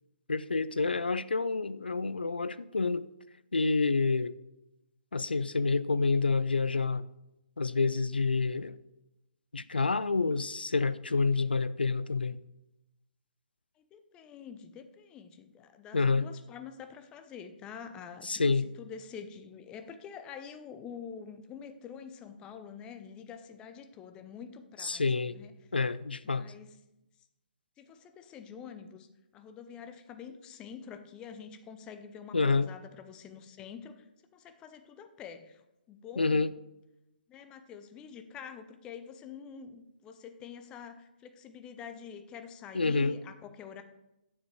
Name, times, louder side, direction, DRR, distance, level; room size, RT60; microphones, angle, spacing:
voice 1, 0.3-3.0 3.5-4.3 5.1-7.0 7.6-8.8 9.5-12.4 15.9-16.3 18.2-18.7 24.8-25.4 25.7-26.4 32.3-32.7 36.2-36.5 42.7-43.2, left 4 dB, 80° left, 15 dB, 0.4 m, -28 dB
voice 2, 13.8-25.5 26.3-26.8 27.8-29.1 29.3-34.1 34.3-35.6 35.9-36.4 37.3-43.8, left 7 dB, 15° left, 9 dB, 0.5 m, -46 dB
8.0 x 7.2 x 3.2 m, 0.93 s
figure-of-eight pair, 135°, 5 cm